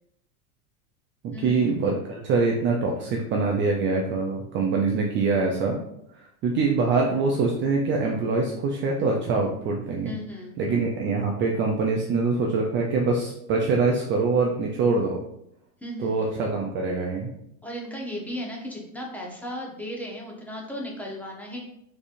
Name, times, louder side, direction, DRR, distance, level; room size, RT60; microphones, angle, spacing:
voice 1, 1.2-5.8 6.1-10.1 10.6-15.2 16.0-17.3, right 4 dB, 30° right, 0 dB, 0.5 m, -24 dB
voice 2, 10.0-10.5 15.8-16.2 17.6-21.6, left 1 dB, 5° left, -2 dB, 0.9 m, -35 dB
4.0 x 3.3 x 2.5 m, 0.78 s
hypercardioid pair, 105°, 42 cm